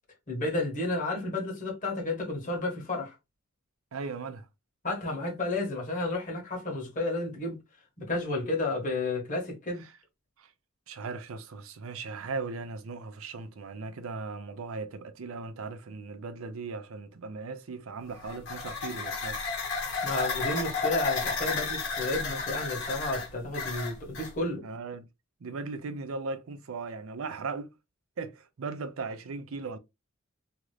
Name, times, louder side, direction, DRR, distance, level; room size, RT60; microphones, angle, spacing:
voice 1, 0.3-3.1 4.8-7.6 8.0-9.8 20.0-24.6, left 2 dB, 40° left, 1.4 m, -31 dB
voice 2, 3.9-4.5 10.4-10.5 10.9-19.4 24.6-25.0 25.4-27.7 28.2-29.8, right 4 dB, 80° right, 0.5 m, -38 dB
sound 1, 18.1-24.3, left 4 dB, 60° left, 1.3 m, -32 dB
2.9 x 2.4 x 3.1 m
head